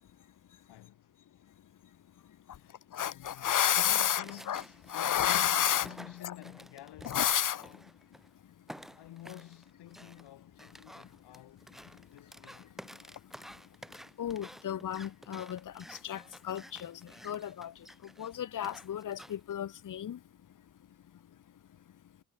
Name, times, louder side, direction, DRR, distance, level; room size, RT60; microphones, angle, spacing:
voice 1, 0.7-1.2 2.5-7.9 9.0-11.7 12.1-12.8, left 14 dB, 85° left, 6.5 m, -50 dB
voice 2, 2.9-4.6 4.9-5.9 6.2-6.3 7.1-7.6 14.2-16.9 17.2-17.7 18.2-20.2, left 10 dB, 50° left, 2.0 m, -31 dB
sound 1, 4.2-8.3 8.7-19.5, equal, ahead, 6.0 m, -52 dB
cardioid pair, 140°, 40 cm